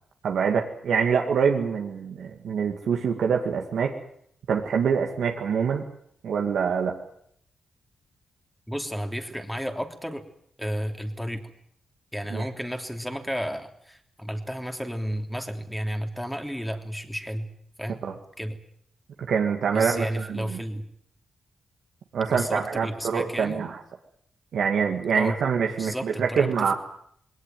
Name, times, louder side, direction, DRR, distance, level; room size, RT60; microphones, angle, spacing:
voice 1, 0.2-3.9 4.5-5.8 6.2-7.0 12.3-12.5 18.0-18.1 19.3-20.6 22.1-23.8 24.5-26.7, right 6 dB, 80° right, 1 dB, 2.2 m, -25 dB
voice 2, 8.7-10.2 10.6-11.5 12.1-17.5 17.8-18.0 18.4-18.6 19.7-20.8 22.3-23.6 25.1-25.4 25.8-26.7, equal, 5° left, 5 dB, 3.2 m, -32 dB
20.5 x 18.5 x 9.4 m, 0.70 s
cardioid pair, 70°, 0 cm